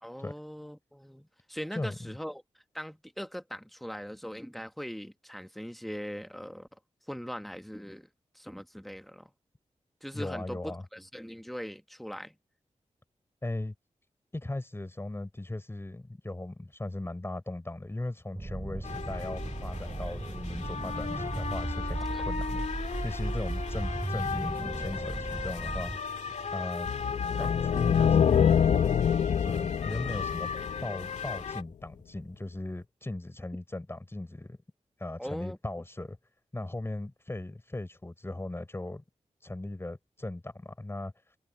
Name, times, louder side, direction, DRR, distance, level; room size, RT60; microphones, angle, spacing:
voice 1, 0.0-2.4 2.7-6.7 7.1-8.1 8.3-9.3 10.0-12.3 22.1-22.3 27.3-27.6 35.2-35.6, equal, ahead, 1.4 m, -40 dB
voice 2, 1.7-2.1 10.1-10.8 13.4-13.7 14.3-22.6 23.0-26.1 26.5-26.9 27.4-28.6 29.4-30.5 30.8-34.6 35.0-36.2 36.5-39.0 39.4-41.1, left 2 dB, 20° left, 4.3 m, -38 dB
sound 1, 18.3-26.0, right 2 dB, 25° right, 5.8 m, -36 dB
sound 2, 18.8-31.6, left 5 dB, 70° left, 2.3 m, -37 dB
sound 3, 26.9-31.3, left 8 dB, 90° left, 0.7 m, -25 dB
wide cardioid pair, 110°, 12 cm